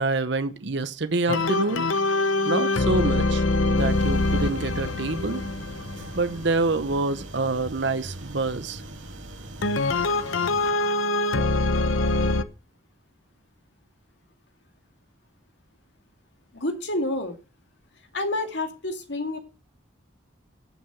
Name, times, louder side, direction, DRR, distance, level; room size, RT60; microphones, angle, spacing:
voice 1, 0.0-1.9 2.5-5.4 6.1-8.8, right 3 dB, 60° right, 0.9 m, -26 dB
sound 1, 1.3-7.0 9.6-12.4, left 2 dB, 80° left, 0.9 m, -24 dB
sound 2, 3.8-10.7, right 1 dB, 75° right, 2.7 m, -41 dB
voice 2, 16.5-17.4 18.1-19.4, left 2 dB, 60° left, 2.3 m, -28 dB
15.0 x 7.8 x 5.9 m
head